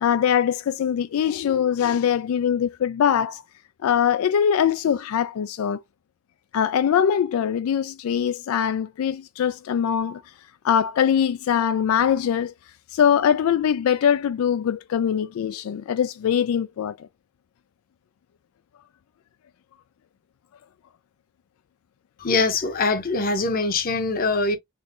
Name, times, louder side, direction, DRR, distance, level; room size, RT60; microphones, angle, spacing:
voice 1, 0.0-3.4 3.8-5.8 6.5-10.2 10.6-12.5 12.9-17.1, left 8 dB, 85° left, 0.3 m, -22 dB
voice 2, 22.2-24.6, left 3 dB, 45° left, 0.7 m, -23 dB
3.7 x 3.0 x 2.5 m
head